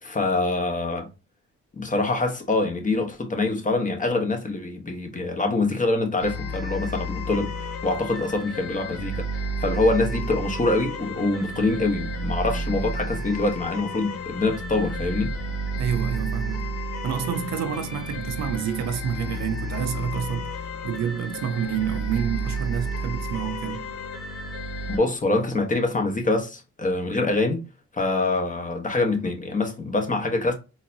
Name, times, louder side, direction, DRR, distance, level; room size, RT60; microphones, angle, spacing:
voice 1, 0.0-1.1 1.7-15.3 24.9-27.6 27.9-30.5, left 2 dB, 25° left, 1.1 m, -25 dB
sound 1, 6.2-25.0, right 1 dB, 90° left, 1.5 m, -31 dB
voice 2, 15.8-16.8 17.0-23.9, right 8 dB, 65° right, 0.6 m, -28 dB
3.9 x 2.8 x 2.6 m
cardioid pair, 90°, 30 cm